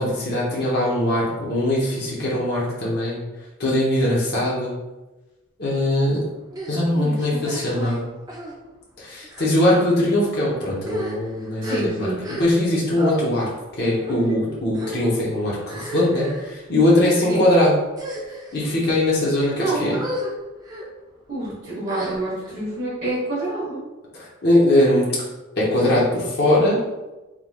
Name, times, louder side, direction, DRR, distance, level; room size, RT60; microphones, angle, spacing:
voice 1, 0.0-3.2 3.6-4.7 5.6-6.2 6.7-8.1 9.0-13.5 13.8-17.8 18.5-20.0 24.1-25.1 25.6-26.8, left 1 dB, 50° left, -6 dB, 0.9 m, -21 dB
sound 1, 6.5-6.7 7.4-7.9 8.3-8.5 9.2-9.5 10.2-10.4 10.8-12.7 13.0-13.2 14.0-14.4 14.7-15.1 15.6-16.5 17.2-17.4 17.9-18.6 19.2-19.5 19.9-20.3 20.6-20.9 21.9-22.5, equal, 20° right, 0.5 m, -33 dB
voice 2, 6.9-7.4 7.7-8.0 11.6-12.2 17.3-17.4 19.6-19.9 21.3-23.8, right 2 dB, 40° right, -12 dB, 1.4 m, -27 dB
3.7 x 3.2 x 2.3 m, 1.1 s
head